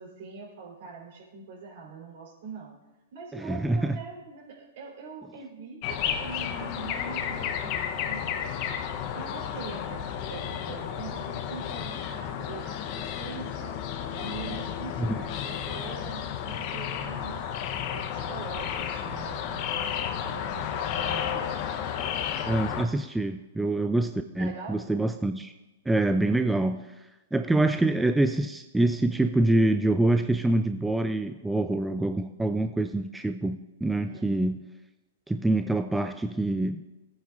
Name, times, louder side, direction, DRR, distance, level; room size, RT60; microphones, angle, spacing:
voice 1, 0.0-2.7 3.1-8.7 9.1-13.8 14.1-17.4 17.9-21.5 24.4-24.8 34.1-34.4, right 4 dB, 60° right, -1 dB, 3.8 m, -43 dB
voice 2, 3.3-4.0 15.0-15.2 22.5-25.5 25.9-26.9 27.3-34.6 35.3-36.8, right 2 dB, 5° right, 8 dB, 0.4 m, -25 dB
sound 1, 5.8-22.8, left 9 dB, 45° left, 0.8 m, -32 dB
16.5 x 9.2 x 2.5 m, 1.1 s
hypercardioid pair, 115°, 0 cm